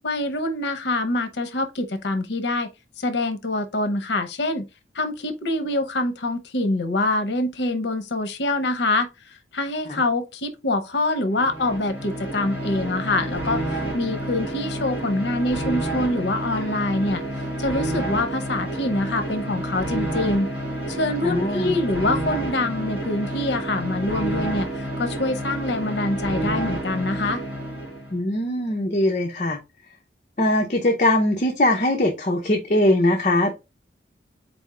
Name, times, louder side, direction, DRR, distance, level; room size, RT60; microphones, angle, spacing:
voice 1, 0.0-2.7 3.0-4.7 4.9-20.5 20.9-27.4, left 2 dB, 75° left, 0.7 m, -25 dB
sound 1, 11.3-28.2, right 1 dB, 10° right, 2.6 m, -29 dB
voice 2, 21.2-21.7 28.1-29.6 30.4-33.5, left 1 dB, 40° left, 0.7 m, -21 dB
4.2 x 3.5 x 3.6 m
head